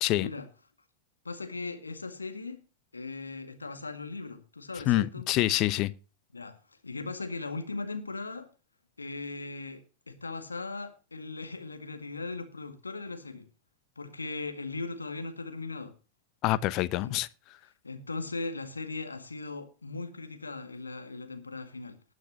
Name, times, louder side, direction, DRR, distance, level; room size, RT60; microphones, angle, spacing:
voice 1, 1.2-2.6 2.9-5.3 6.3-6.6 6.8-8.5 9.0-13.5 14.0-15.9 17.0-17.2 17.8-22.0, left 3 dB, 80° left, 1.9 m, -38 dB
voice 2, 4.9-5.9 16.4-17.3, left 16 dB, 40° left, 0.8 m, -26 dB
19.0 x 9.3 x 2.9 m
figure-of-eight pair, 90°, 0 cm